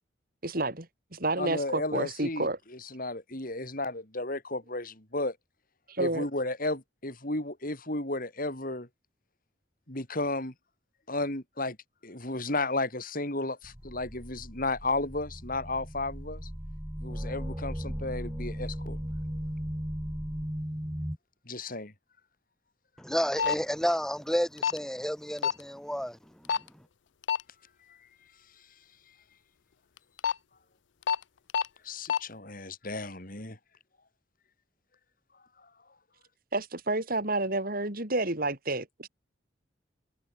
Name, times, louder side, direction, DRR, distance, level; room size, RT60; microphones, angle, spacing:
voice 1, 0.4-2.6 5.9-6.3 36.5-39.1, right 2 dB, 50° right, 5.0 m, -30 dB
voice 2, 1.4-2.5 2.9-5.4 6.0-8.9 9.9-10.5 11.1-11.8 12.0-16.5 17.0-19.0 21.5-21.9 27.9-28.0 31.8-33.6, left 2 dB, 45° left, 5.3 m, -33 dB
sound 1, 13.6-21.2, equal, 15° right, 1.9 m, -37 dB
voice 3, 23.0-26.2, equal, 5° left, 1.7 m, -30 dB
sound 2, 23.4-23.6 24.6-24.8 25.4-25.6 26.5-26.7 27.2-27.4 30.0-30.3 31.1-31.2 31.5-31.7 32.1-32.2, left 7 dB, 75° left, 0.5 m, -26 dB
head